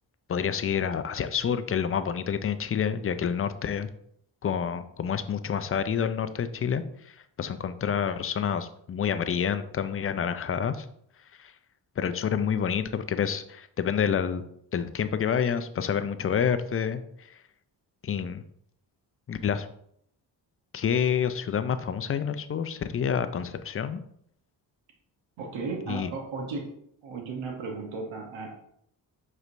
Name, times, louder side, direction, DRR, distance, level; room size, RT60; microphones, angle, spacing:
voice 1, 0.3-3.9 4.4-10.9 11.4-11.5 12.0-14.4 14.7-17.0 18.0-18.4 19.3-19.7 20.7-24.0 25.9-26.1, left 7 dB, 30° left, 11 dB, 0.4 m, -28 dB
voice 2, 25.4-26.6 27.0-28.5, right 4 dB, 80° right, 1 dB, 1.0 m, -35 dB
4.9 x 3.3 x 2.6 m, 0.70 s
supercardioid pair, 50°, 46 cm